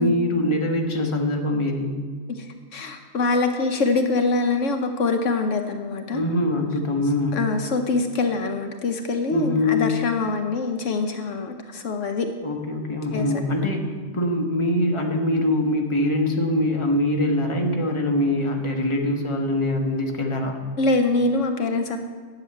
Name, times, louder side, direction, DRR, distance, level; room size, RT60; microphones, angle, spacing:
voice 1, 0.0-2.0 6.1-7.4 9.3-10.0 12.4-20.6, left 1 dB, 25° left, 3 dB, 1.2 m, -23 dB
voice 2, 2.7-6.2 7.3-12.3 13.1-13.3 20.8-22.0, left 3 dB, 70° left, 6 dB, 1.1 m, -24 dB
10.0 x 7.2 x 8.5 m, 1.5 s
omnidirectional pair, 1.3 m